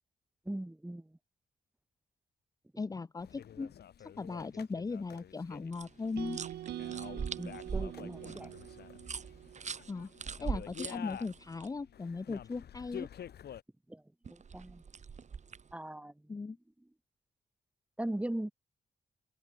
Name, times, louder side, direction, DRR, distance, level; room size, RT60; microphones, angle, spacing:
voice 1, 0.4-1.2 7.4-8.5 13.9-14.0 14.3-14.8 15.7-16.3 18.0-18.5, right 1 dB, 5° right, 1.5 m, -39 dB
voice 2, 2.8-3.7 4.0-6.4 9.9-10.1 10.4-13.1 16.3-16.6, left 4 dB, 20° left, 0.5 m, -38 dB
sound 1, 3.2-13.6, left 9 dB, 85° left, 4.3 m, -49 dB
sound 2, 5.7-11.7 14.2-15.7, right 6 dB, 45° right, 2.0 m, -42 dB
sound 3, 6.2-10.3, right 12 dB, 90° right, 0.5 m, -44 dB
open air
wide cardioid pair, 115°, 16 cm